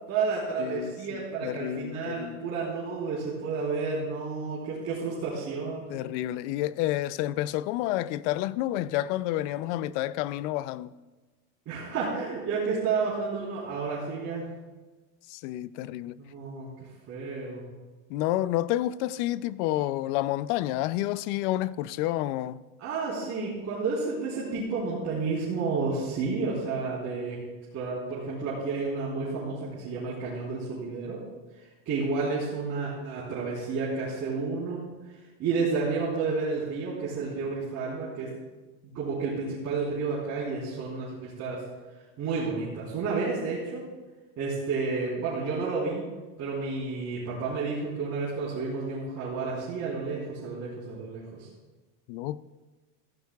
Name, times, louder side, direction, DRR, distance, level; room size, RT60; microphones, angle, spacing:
voice 1, 0.1-5.9 11.7-14.5 16.2-16.7 17.1-17.6 22.8-27.4 27.7-31.2 31.9-34.8 35.4-38.3 38.9-41.6 42.2-43.8 44.4-46.0 46.4-51.5, right 4 dB, 35° right, 3.8 m, -31 dB
voice 2, 0.6-2.4 5.9-10.9 15.3-16.1 18.1-22.6 52.1-52.4, left 14 dB, 55° left, 0.5 m, -29 dB
15.0 x 15.0 x 2.3 m
supercardioid pair, 140°, 42 cm